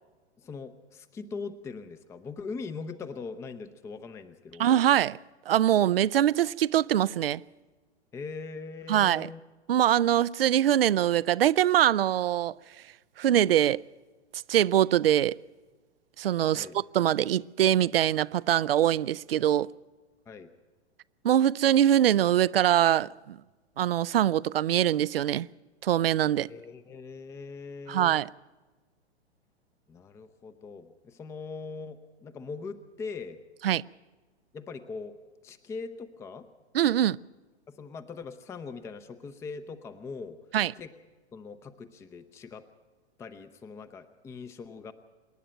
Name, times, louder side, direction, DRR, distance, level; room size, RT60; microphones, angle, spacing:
voice 1, 0.4-4.7 8.1-9.4 16.5-16.8 20.3-20.5 26.5-28.2 29.9-33.4 34.5-35.1 35.4-36.5 37.7-40.4 40.8-40.9 41.3-42.7 43.2-44.9, left 4 dB, 10° left, 0.7 m, -41 dB
voice 2, 4.6-5.2 5.5-7.4 8.9-9.3 9.7-12.5 13.2-13.8 14.3-15.3 16.2-16.7 16.9-19.7 21.2-23.4 23.8-25.5 25.8-26.5 27.9-28.3 33.6-33.8 36.7-37.2 40.5-40.7, right 11 dB, 55° right, 0.5 m, -23 dB
27.0 x 11.0 x 9.1 m
figure-of-eight pair, 110°, 34 cm